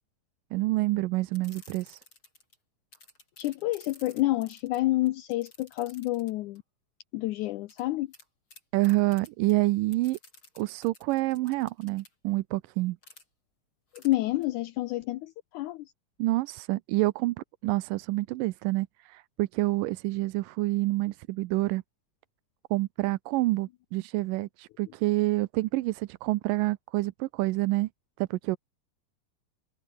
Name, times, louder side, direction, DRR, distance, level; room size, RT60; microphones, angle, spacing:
voice 1, 0.5-2.0 8.7-10.2 10.6-13.0 16.2-21.8 22.7-27.9 28.2-28.6, right 19 dB, 85° right, 2.3 m, -28 dB
sound 1, 1.3-2.6 2.9-6.6 7.7-7.8 8.1-8.3 8.5-9.5 9.9-12.1 13.0-13.2 14.0-14.1 14.4-14.5, left 2 dB, 35° left, 8.8 m, -53 dB
voice 2, 3.4-6.6 7.1-8.1 13.9-15.9, left 17 dB, 75° left, 2.0 m, -29 dB
omnidirectional pair, 3.8 m